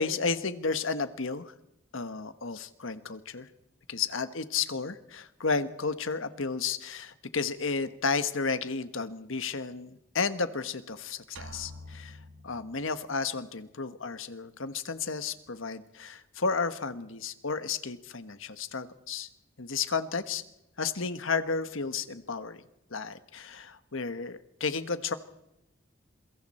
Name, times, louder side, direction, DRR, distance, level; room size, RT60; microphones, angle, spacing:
voice 1, 0.0-1.5 1.9-3.5 3.9-19.3 19.6-20.4 20.8-22.6 22.9-25.1, left 4 dB, 80° left, 11 dB, 1.3 m, -32 dB
sound 1, 11.4-13.2, left 1 dB, 75° right, 2.1 m, -47 dB
27.5 x 23.0 x 4.4 m, 0.88 s
head